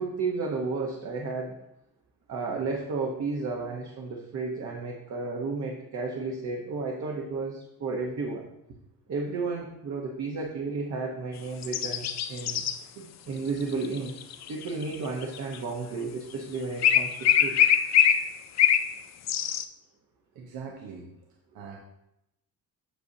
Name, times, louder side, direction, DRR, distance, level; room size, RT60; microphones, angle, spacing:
voice 1, 0.0-1.6 2.3-8.5 9.1-12.7 13.3-14.1 14.5-17.6, right 4 dB, 50° right, -1 dB, 1.0 m, -32 dB
sound 1, 11.6-12.8 13.6-15.6 16.8-18.9 19.3-19.6, left 9 dB, 50° left, 0.5 m, -23 dB
voice 2, 20.3-21.1 21.5-21.8, right 6 dB, 85° right, 0 dB, 1.0 m, -42 dB
8.0 x 6.4 x 2.8 m, 0.83 s
cardioid pair, 140°, 35 cm